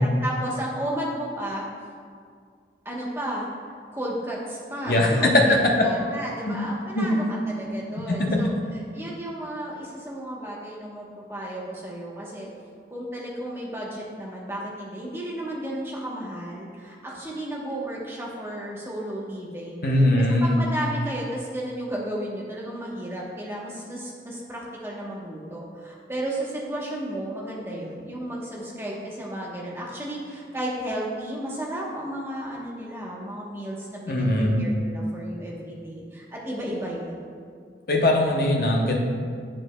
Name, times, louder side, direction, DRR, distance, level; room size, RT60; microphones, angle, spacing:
voice 1, 0.0-1.6 2.8-12.5 12.9-19.8 20.2-37.3, right 1 dB, 15° right, -4 dB, 1.0 m, -33 dB
voice 2, 4.9-5.6 6.5-6.6 6.9-7.1 8.1-8.4 19.8-20.6 34.1-34.6 37.9-39.0, left 1 dB, 55° left, 0 dB, 0.9 m, -20 dB
8.7 x 7.4 x 2.2 m, 2.1 s
head